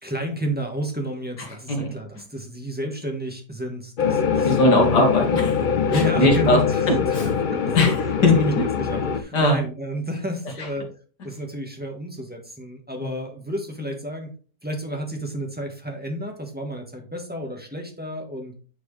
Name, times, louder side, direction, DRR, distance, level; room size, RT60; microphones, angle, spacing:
voice 1, 0.0-4.9 5.9-7.8 8.3-10.9 11.2-14.3 14.6-18.5, equal, 5° right, 2 dB, 1.4 m, -31 dB
sound 1, 4.0-9.2, left 6 dB, 50° left, 0.6 m, -23 dB
voice 2, 4.4-5.6 5.9-6.6 6.9-7.3 7.7-8.5 9.3-9.6 13.0-13.1, left 2 dB, 85° left, 1 dB, 2.4 m, -20 dB
9.2 x 4.6 x 3.3 m, 0.37 s
omnidirectional pair, 1.8 m